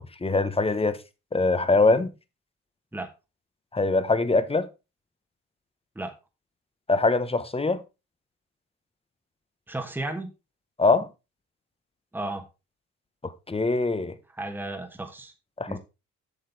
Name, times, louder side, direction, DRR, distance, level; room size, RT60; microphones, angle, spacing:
voice 1, 0.2-1.0 1.3-2.1 3.7-4.7 6.9-7.8 10.8-11.1 13.2-14.1 15.6-15.8, left 3 dB, 20° left, 1.0 m, -23 dB
voice 2, 9.7-10.3 12.1-12.4 14.3-15.3 15.7-15.8, right 2 dB, 5° right, 1.4 m, -33 dB
8.1 x 6.5 x 4.0 m
cardioid pair, 90°, 30 cm